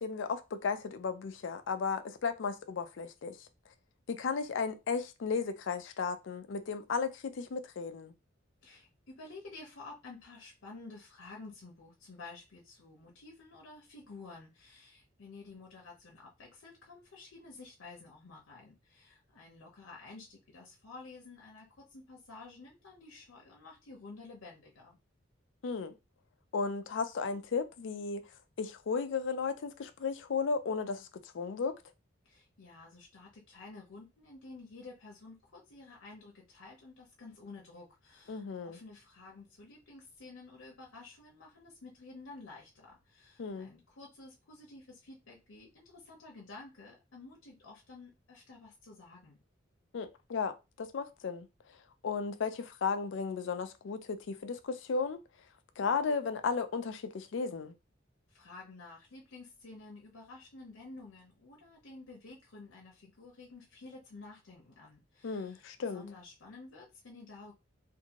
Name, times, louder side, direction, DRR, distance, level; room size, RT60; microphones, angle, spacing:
voice 1, 0.0-3.5 4.1-8.1 25.6-26.0 26.5-28.2 28.6-31.1 31.3-31.8 38.3-38.8 43.4-43.7 49.9-51.5 52.0-55.2 55.8-57.7 65.2-66.0, left 5 dB, 65° left, 0.4 m, -34 dB
voice 2, 8.6-25.0 32.2-49.4 58.3-67.5, left 3 dB, 85° left, 0.7 m, -51 dB
2.6 x 2.6 x 2.9 m
head